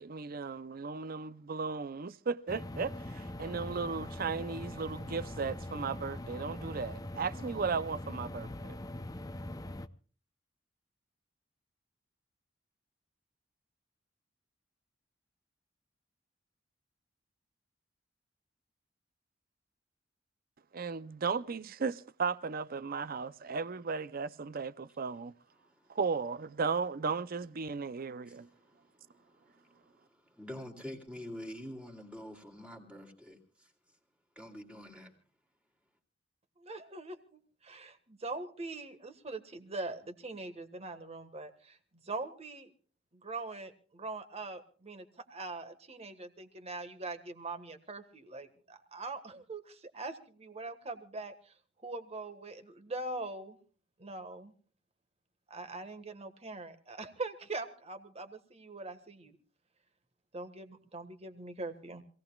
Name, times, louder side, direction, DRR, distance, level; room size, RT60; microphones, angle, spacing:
voice 1, 0.0-8.8 20.7-25.3 25.9-28.5, right 5 dB, 50° right, 0.6 m, -35 dB
sound 1, 2.5-9.9, left 1 dB, 20° left, 0.6 m, -42 dB
voice 2, 25.6-26.0 28.2-33.7 34.4-35.1, left 1 dB, 5° right, 2.6 m, -47 dB
voice 3, 36.6-42.7 43.2-51.3 51.8-53.6 54.0-54.5 55.5-59.3 60.3-62.0, right 3 dB, 35° right, 1.5 m, -42 dB
26.0 x 17.5 x 2.3 m
head